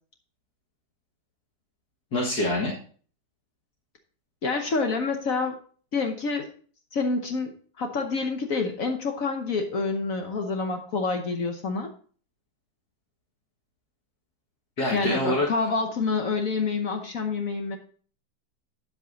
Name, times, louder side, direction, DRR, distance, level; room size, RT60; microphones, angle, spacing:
voice 1, 2.1-2.7 14.8-15.5, left 1 dB, 75° left, -3 dB, 2.3 m, -25 dB
voice 2, 4.4-5.6 5.9-6.5 6.9-11.9 14.9-17.8, left 4 dB, 60° left, 4 dB, 1.3 m, -27 dB
9.4 x 7.7 x 4.0 m, 0.44 s
omnidirectional pair, 1.7 m